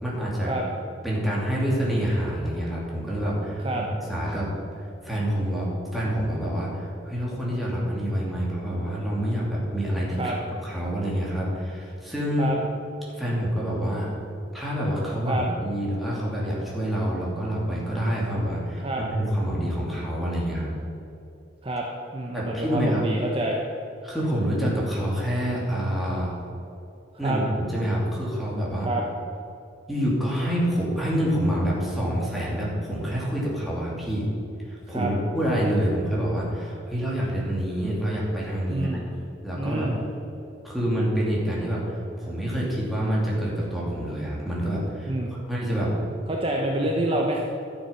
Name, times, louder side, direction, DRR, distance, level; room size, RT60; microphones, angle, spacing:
voice 1, 0.0-0.5 1.0-3.8 4.1-4.5 5.0-10.3 10.6-12.5 13.2-14.1 14.5-20.7 22.3-23.1 24.0-26.3 27.2-28.9 29.9-34.3 34.7-38.9 39.4-39.9 40.6-45.1 45.5-45.9, equal, ahead, -6 dB, 2.8 m, -27 dB
voice 2, 22.1-23.6 27.2-27.4 28.8-29.0 34.9-35.1 38.7-39.1 39.5-40.0 45.1-45.4 46.3-47.4, right 1 dB, 30° right, -1 dB, 0.9 m, -27 dB
12.0 x 7.3 x 5.8 m, 2.7 s
head